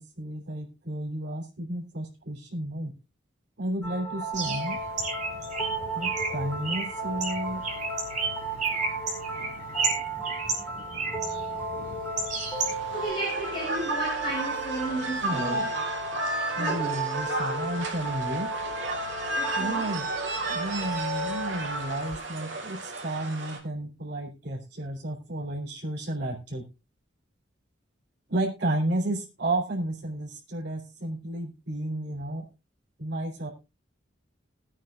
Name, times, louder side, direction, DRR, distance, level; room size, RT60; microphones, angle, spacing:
voice 1, 0.0-2.9 3.6-4.8 5.9-7.6 15.2-15.7 16.5-18.5 19.5-20.1 20.5-26.6 28.3-32.5 33.0-33.5, right 1 dB, 65° right, 3.8 m, -32 dB
sound 1, 3.8-22.1, right 3 dB, 10° left, 3.6 m, -34 dB
Bird, 4.3-13.1, right 4 dB, 40° right, 4.4 m, -33 dB
sound 2, 12.5-23.6, right 2 dB, 85° right, 3.0 m, -33 dB
voice 2, 12.9-15.7 16.6-16.9 19.3-19.8, right 1 dB, 25° left, 6.7 m, -33 dB
20.5 x 8.9 x 2.5 m
head